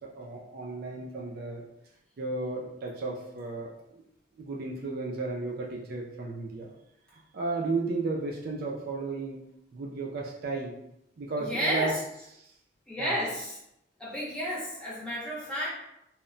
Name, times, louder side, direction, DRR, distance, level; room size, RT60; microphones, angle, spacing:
voice 1, 0.0-1.6 2.2-4.0 4.4-6.7 7.1-9.4 9.7-10.8 11.2-11.9 12.4-12.5 13.0-13.2, right 3 dB, 50° right, -2 dB, 0.4 m, -34 dB
voice 2, 11.4-12.0 12.9-13.6 14.0-15.7, equal, 5° left, -8 dB, 0.7 m, -31 dB
2.1 x 2.1 x 3.7 m, 0.81 s
head